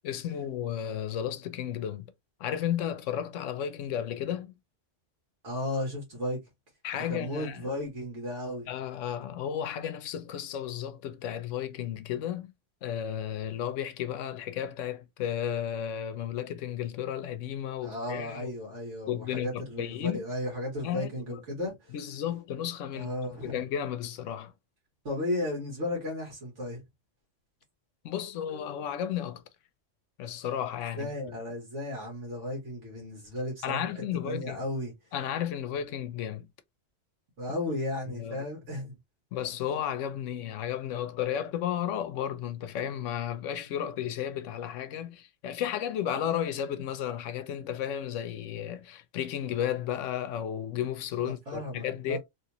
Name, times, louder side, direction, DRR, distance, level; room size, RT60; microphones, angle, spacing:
voice 1, 0.0-2.1 2.4-4.5 6.8-7.6 8.7-12.5 12.8-18.6 19.1-20.2 20.8-21.4 21.9-23.1 23.4-24.5 28.0-29.4 30.2-31.1 33.6-34.6 35.1-36.5 38.1-38.5 39.3-52.2, left 10 dB, 85° left, 0.9 m, -33 dB
voice 2, 5.4-6.4 6.9-8.7 17.8-21.9 22.9-23.6 25.0-26.8 31.0-33.9 34.2-34.9 37.4-38.9 51.2-52.2, left 1 dB, 75° right, 1.6 m, -34 dB
3.0 x 2.8 x 2.8 m
omnidirectional pair, 1.3 m